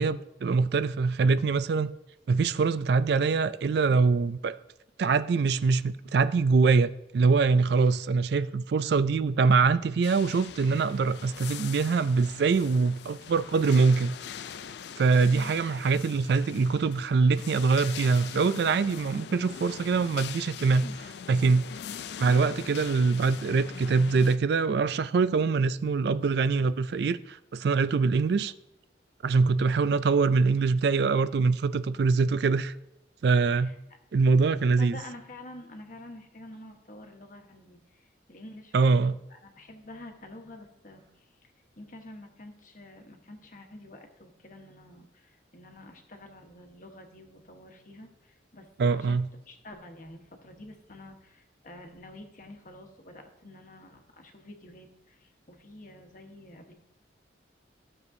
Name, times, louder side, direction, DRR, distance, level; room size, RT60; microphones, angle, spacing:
voice 1, 0.0-1.9 2.3-4.5 5.0-14.2 15.0-20.8 21.3-21.6 22.2-28.5 29.2-32.7 33.2-33.7 34.1-35.0 38.7-39.2 48.8-49.3, right 4 dB, 60° right, 0.3 m, -24 dB
sound 1, 10.0-24.4, left 8 dB, 65° left, 0.3 m, -42 dB
voice 2, 34.8-49.2 49.5-56.7, left 1 dB, 45° left, 1.2 m, -48 dB
14.5 x 6.8 x 2.7 m
head